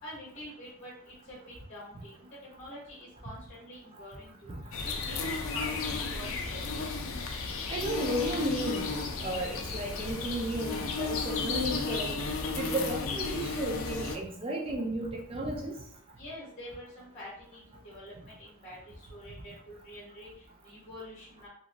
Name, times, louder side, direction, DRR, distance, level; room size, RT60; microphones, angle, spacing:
voice 1, 0.0-4.5 4.8-6.6 16.2-21.5, equal, 35° left, -7 dB, 1.0 m, -47 dB
sound 1, 4.7-14.2, left 4 dB, 65° left, 0.4 m, -34 dB
voice 2, 7.7-8.9 9.2-12.2 12.6-15.8, right 1 dB, 25° right, 0 dB, 0.4 m, -33 dB
2.9 x 2.5 x 2.5 m, 0.62 s
head